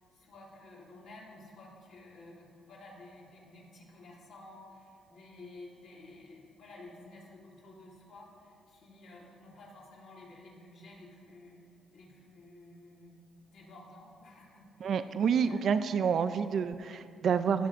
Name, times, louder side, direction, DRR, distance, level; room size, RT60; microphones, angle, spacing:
voice 1, 0.0-11.6 11.9-15.7, left 2 dB, 75° left, -5 dB, 2.3 m, -52 dB
voice 2, 14.8-17.7, right 7 dB, 60° right, 10 dB, 0.3 m, -28 dB
16.5 x 7.2 x 2.5 m, 2.4 s
cardioid pair, 90°, 0 cm